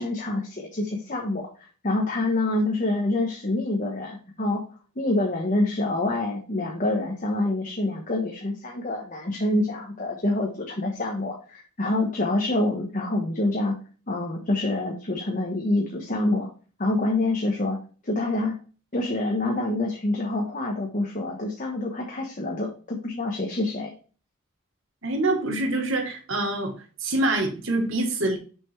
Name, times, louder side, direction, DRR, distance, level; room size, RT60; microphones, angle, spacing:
voice 1, 0.0-4.6 5.0-13.8 14.1-16.5 16.8-17.8 18.0-18.6 18.9-23.9, left 2 dB, 35° left, 1.1 m, -26 dB
voice 2, 25.0-26.7 27.0-28.4, right 2 dB, 60° right, 1.3 m, -25 dB
6.4 x 5.6 x 3.2 m
head